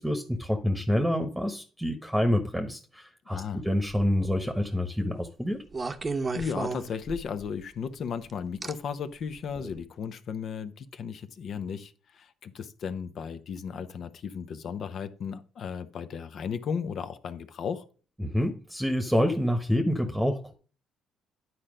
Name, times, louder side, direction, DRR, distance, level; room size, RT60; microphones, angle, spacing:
voice 1, 0.0-5.6 18.2-20.5, left 1 dB, 5° right, 1.2 m, -27 dB
voice 2, 3.3-3.6 6.3-17.8, left 6 dB, 60° left, 0.8 m, -35 dB
sound 1, 3.9-4.4 5.7-7.5 8.6-8.7 9.6-9.7, right 3 dB, 30° right, 0.9 m, -33 dB
9.6 x 4.4 x 5.0 m
hypercardioid pair, 60°, 0 cm